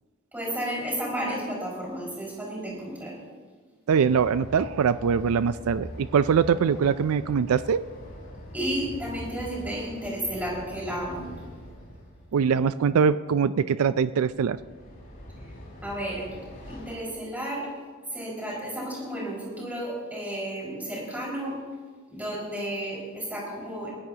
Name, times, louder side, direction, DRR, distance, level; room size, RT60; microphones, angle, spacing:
voice 1, 0.3-3.2 8.5-11.3 15.8-16.3 16.7-17.7 18.1-21.6 22.1-23.9, right 1 dB, 10° right, -5 dB, 5.1 m, -32 dB
Train, 3.9-12.4 14.2-16.9, equal, 40° left, 5.5 m, -43 dB
voice 2, 3.9-7.8 12.3-14.6, right 6 dB, 85° right, 14 dB, 0.4 m, -23 dB
22.0 x 15.5 x 2.8 m, 1.5 s
head